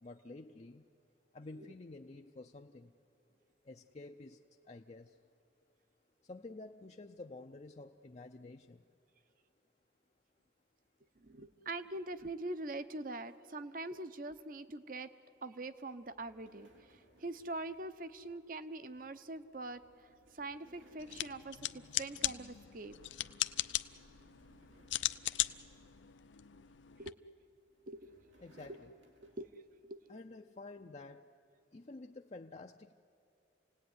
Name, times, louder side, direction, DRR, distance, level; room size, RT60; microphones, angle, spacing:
voice 1, 0.0-0.8 1.3-2.9 3.7-4.4 4.7-5.1 6.3-8.8 28.4-28.9 30.1-31.3 31.7-32.9, left 2 dB, 35° left, 5 dB, 0.5 m, -50 dB
voice 2, 11.2-15.1 15.4-23.0 27.0-27.2 27.9-28.1 29.2-29.5 29.8-30.0, right 2 dB, 45° right, 12 dB, 0.8 m, -44 dB
sound 1, 16.0-22.5 22.9-23.2 23.6-26.6 27.4-29.9, right 1 dB, 85° right, 3.3 m, -66 dB
sound 2, 21.0-27.1, left 14 dB, 80° left, 0.6 m, -39 dB
28.5 x 18.0 x 9.5 m, 2.9 s
head